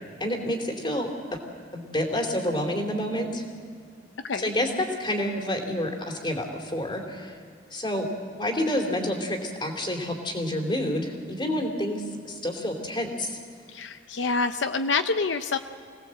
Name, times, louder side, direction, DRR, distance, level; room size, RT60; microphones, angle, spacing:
voice 1, 0.2-1.4 1.7-3.4 4.4-7.4 7.7-8.1 8.4-13.4, left 1 dB, 25° left, 2 dB, 3.1 m, -29 dB
voice 2, 13.7-15.6, left 4 dB, 75° left, 9 dB, 0.7 m, -27 dB
26.0 x 18.5 x 7.7 m, 2.3 s
head